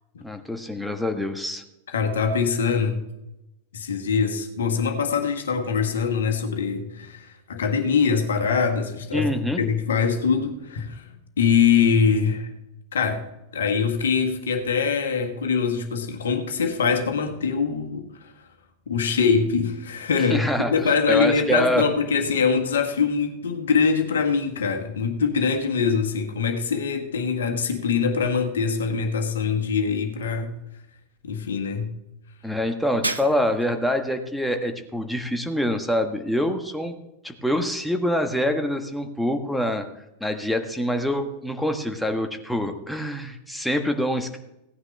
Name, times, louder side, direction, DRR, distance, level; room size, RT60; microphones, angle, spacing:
voice 1, 0.2-1.6 9.1-9.6 20.3-20.8 21.1-21.9 32.4-36.9 37.2-39.8 40.2-44.4, left 1 dB, ahead, 5 dB, 1.4 m, -25 dB
voice 2, 1.9-3.0 3.7-11.0 11.4-12.5 12.9-13.2 13.5-18.1 18.9-30.5 31.2-31.9, left 6 dB, 65° left, 5 dB, 1.7 m, -23 dB
Shatter, 33.0-33.8, right 2 dB, 85° right, 0.5 m, -30 dB
17.0 x 9.6 x 3.4 m, 0.90 s
figure-of-eight pair, 90°, 0 cm